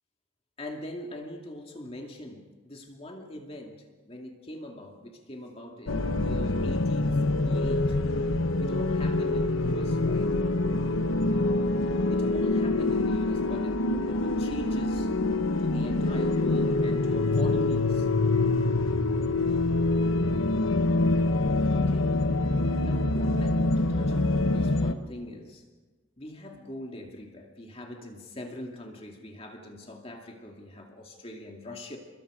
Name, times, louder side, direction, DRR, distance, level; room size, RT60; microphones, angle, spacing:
voice 1, 0.6-8.0 8.6-10.3 12.1-15.1 15.6-18.1 21.7-25.6 26.2-32.0, left 1 dB, 30° left, 1 dB, 2.4 m, -42 dB
sound 1, 5.9-24.9, left 2 dB, 85° left, 1.1 m, -25 dB
29.0 x 21.5 x 5.0 m, 1.3 s
head